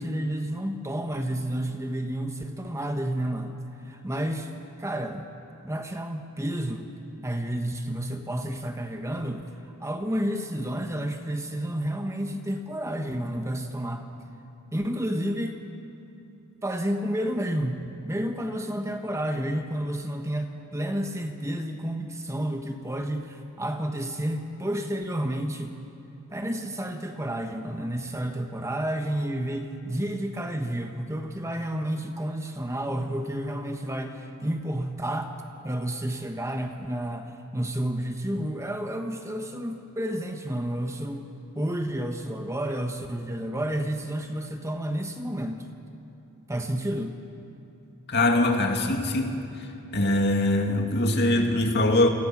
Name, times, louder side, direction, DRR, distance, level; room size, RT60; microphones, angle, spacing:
voice 1, 0.0-4.5 4.8-5.3 5.6-6.9 7.2-9.4 9.8-14.1 14.7-15.6 16.6-25.8 26.3-35.3 35.6-41.3 41.5-45.7 46.5-47.1, right 1 dB, 15° right, 5 dB, 1.2 m, -30 dB
voice 2, 48.1-49.4 49.9-52.1, left 1 dB, 50° left, 3 dB, 2.3 m, -22 dB
29.0 x 20.5 x 6.1 m, 2.9 s
head